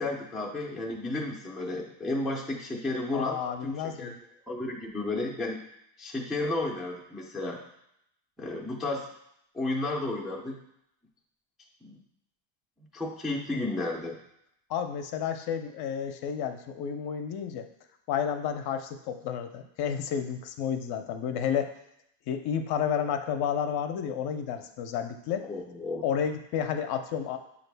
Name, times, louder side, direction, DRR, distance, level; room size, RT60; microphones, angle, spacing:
voice 1, 0.0-4.2 4.5-5.6 6.0-7.6 8.4-9.0 9.5-10.6 11.8-12.0 12.9-14.2 25.5-26.0, left 2 dB, ahead, -3 dB, 0.4 m, -32 dB
voice 2, 3.1-4.2 14.7-17.7 18.1-21.7 22.3-25.5 26.0-27.4, left 8 dB, 50° left, 7 dB, 0.5 m, -31 dB
6.6 x 2.4 x 3.3 m, 0.78 s
cardioid pair, 130°, 49 cm